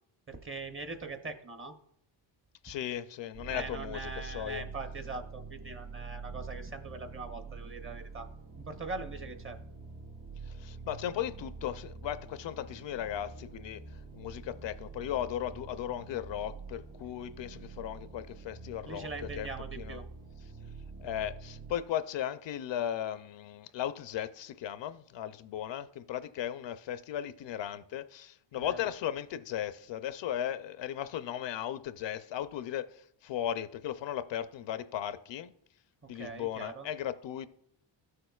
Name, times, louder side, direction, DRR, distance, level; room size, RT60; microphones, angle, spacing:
voice 1, 0.3-1.7 3.5-8.3 8.7-9.6 18.9-20.0 28.6-28.9 36.1-36.9, right 3 dB, 25° right, 0.7 m, -42 dB
voice 2, 2.6-4.7 10.4-13.8 14.1-20.0 21.0-35.5 36.1-37.5, left 11 dB, 65° left, 0.5 m, -36 dB
sound 1, 3.3-21.8, right 4 dB, 45° right, 1.3 m, -46 dB
14.0 x 6.5 x 2.3 m
cardioid pair, 125°, 48 cm